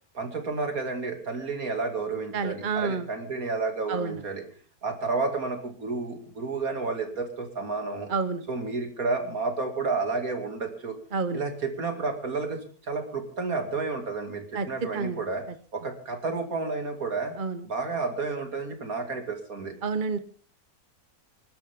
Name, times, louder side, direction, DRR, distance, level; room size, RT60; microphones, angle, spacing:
voice 1, 0.1-4.4 4.8-8.1 8.5-11.0 11.3-15.4 15.7-17.3 17.6-19.7, right 3 dB, 70° right, 4 dB, 3.0 m, -31 dB
voice 2, 2.3-3.1 3.9-4.2 8.1-8.4 11.1-11.4 14.5-14.7 14.9-15.2 17.4-17.6 19.8-20.2, right 4 dB, 40° right, 11 dB, 1.0 m, -29 dB
26.5 x 12.0 x 3.7 m, 0.40 s
omnidirectional pair, 1.6 m